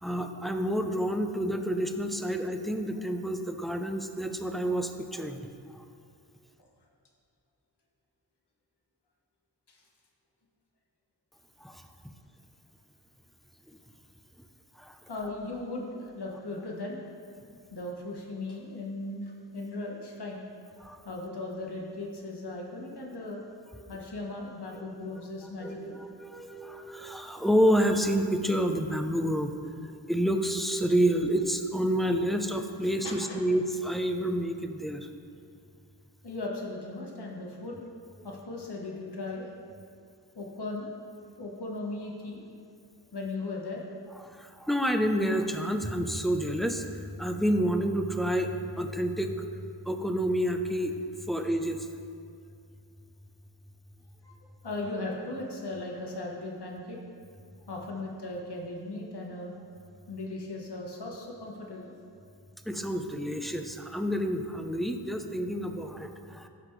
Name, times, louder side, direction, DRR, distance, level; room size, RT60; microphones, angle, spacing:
voice 1, 0.0-5.4 11.6-11.9 14.8-15.0 20.8-21.0 25.6-29.5 30.1-35.1 44.2-49.4 49.9-50.9 51.3-51.9 62.7-66.5, equal, ahead, 5 dB, 0.7 m, -29 dB
voice 2, 15.1-17.0 17.7-20.4 21.0-23.4 23.9-26.0 33.0-33.4 36.2-37.8 38.2-39.5 40.3-40.9 41.4-42.4 43.1-43.8 54.4-57.0 57.7-59.5 60.1-61.9 62.2-62.3, left 2 dB, 65° left, -2 dB, 1.3 m, -37 dB
15.5 x 5.7 x 3.3 m, 2.3 s
cardioid pair, 40°, 43 cm